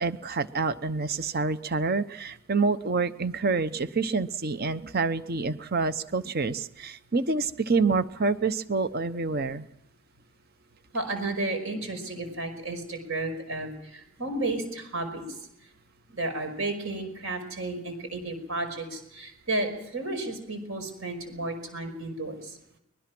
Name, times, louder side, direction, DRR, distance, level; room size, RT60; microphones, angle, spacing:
voice 1, 0.0-9.7, right 4 dB, 45° right, 12 dB, 0.9 m, -27 dB
voice 2, 10.9-15.2 16.1-22.6, right 2 dB, 65° right, 7 dB, 5.3 m, -32 dB
24.5 x 21.5 x 6.1 m, 0.79 s
head